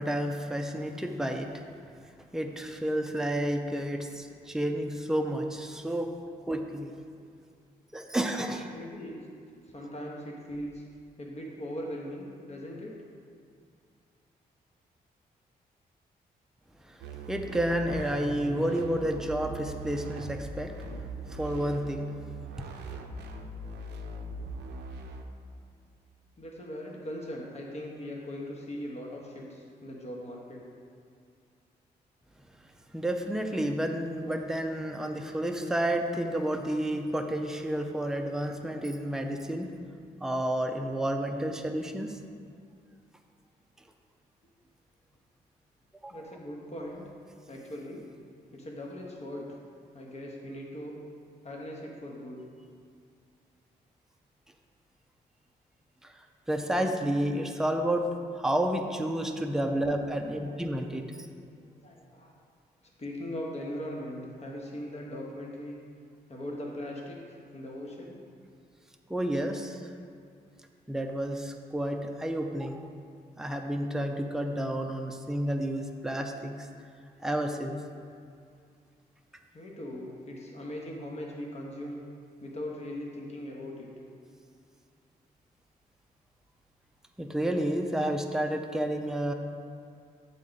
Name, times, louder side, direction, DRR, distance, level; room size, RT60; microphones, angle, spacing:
voice 1, 0.0-1.5 2.3-6.1 6.5-6.9 7.9-8.7 16.8-17.0 17.3-20.7 21.3-22.1 32.9-39.7 40.2-42.2 46.0-46.2 56.0-56.1 56.5-58.1 58.3-61.1 69.1-69.9 70.9-72.9 73.4-76.7 77.2-77.8 87.2-89.3, right 1 dB, 5° right, 3 dB, 0.5 m, -30 dB
voice 2, 8.7-9.3 9.7-10.8 11.2-12.9 26.4-30.7 46.1-47.1 47.5-48.0 48.5-49.6 49.9-50.9 51.4-52.4 59.7-60.6 61.5-62.4 63.0-65.8 66.3-68.2 79.5-82.0 82.4-83.9, left 1 dB, 40° left, -2 dB, 1.2 m, -40 dB
sound 1, 17.0-25.2, right 2 dB, 90° right, 0.5 m, -40 dB
7.4 x 3.7 x 4.0 m, 2.3 s
cardioid pair, 60°, 17 cm